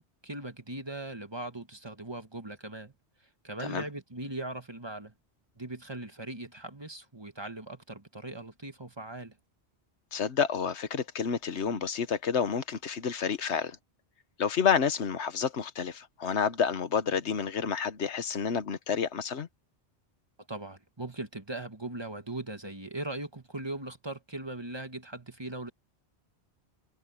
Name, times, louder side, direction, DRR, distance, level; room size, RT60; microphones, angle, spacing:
voice 1, 0.0-2.9 3.4-5.1 5.6-9.4 20.5-25.7, right 2 dB, 25° right, 1.4 m, -39 dB
voice 2, 10.1-13.8 14.4-19.5, left 7 dB, 90° left, 1.4 m, -29 dB
open air
omnidirectional pair, 1.1 m